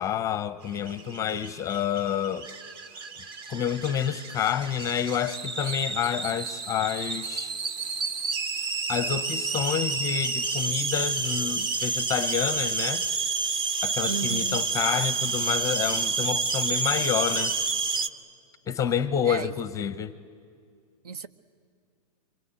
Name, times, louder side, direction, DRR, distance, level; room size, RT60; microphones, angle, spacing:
voice 1, 0.0-2.5 3.5-7.5 8.9-13.1 13.8-17.5 18.7-20.2, left 9 dB, 15° left, 0.6 m, -28 dB
sound 1, 0.8-18.1, right 4 dB, 25° right, 0.8 m, -29 dB
voice 2, 14.1-14.6 19.2-19.5 21.0-21.3, right 4 dB, 75° right, 1.2 m, -33 dB
26.0 x 24.5 x 8.7 m
hypercardioid pair, 135°, 20 cm